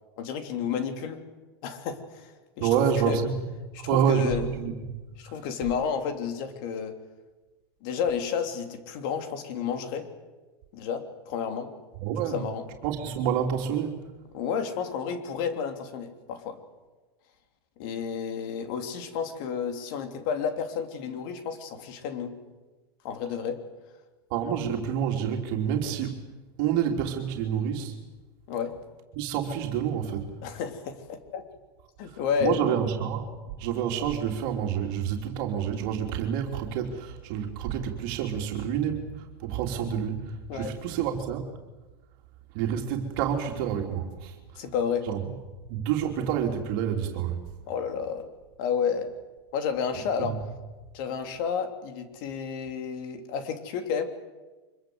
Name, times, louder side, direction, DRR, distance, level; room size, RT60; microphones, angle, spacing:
voice 1, 0.2-1.2 1.6-3.2 3.7-4.4 5.2-7.0 7.8-10.1 10.7-11.7 12.3-12.7 14.3-16.6 17.8-22.3 23.0-23.6 28.5-28.7 30.4-31.4 32.0-32.8 40.5-40.7 44.6-45.1 47.7-48.3 48.6-49.1 49.5-50.4 50.9-54.0, left 7 dB, 55° left, 6 dB, 3.3 m, -31 dB
voice 2, 2.6-3.4 3.9-4.9 12.0-12.4 12.8-14.1 24.3-26.2 26.6-28.0 29.1-30.3 32.4-33.3 33.6-41.4 42.5-44.4 45.1-47.4 50.2-50.4, right 8 dB, 55° right, 2 dB, 3.2 m, -28 dB
24.5 x 23.0 x 8.0 m, 1.2 s
supercardioid pair, 140°, 13 cm